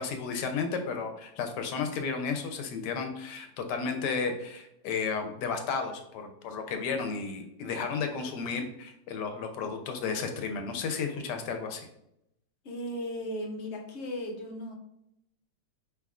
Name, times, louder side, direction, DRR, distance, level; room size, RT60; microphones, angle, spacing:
voice 1, 0.0-11.9, left 5 dB, 85° left, 6 dB, 1.2 m, -33 dB
voice 2, 12.6-14.8, equal, 55° left, 2 dB, 0.8 m, -36 dB
4.7 x 3.5 x 2.4 m, 0.80 s
omnidirectional pair, 1.7 m